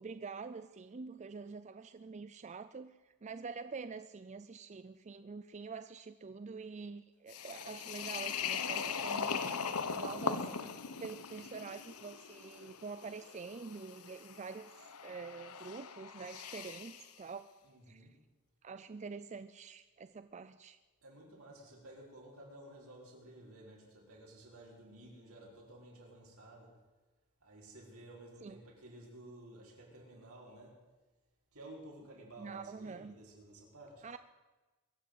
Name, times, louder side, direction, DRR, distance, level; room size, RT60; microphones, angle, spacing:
voice 1, 0.0-9.6 10.0-10.5 11.0-17.5 17.9-18.1 18.6-20.8 28.4-28.6 32.4-33.2 34.0-34.2, right 4 dB, 30° right, 12 dB, 0.4 m, -46 dB
sound 1, 7.3-17.1, left 6 dB, 90° left, 1.1 m, -40 dB
voice 2, 17.6-18.1 21.0-26.7 27.4-30.7 31.5-34.1, right 1 dB, 75° right, -2 dB, 5.0 m, -54 dB
23.0 x 7.7 x 8.1 m, 1.2 s
head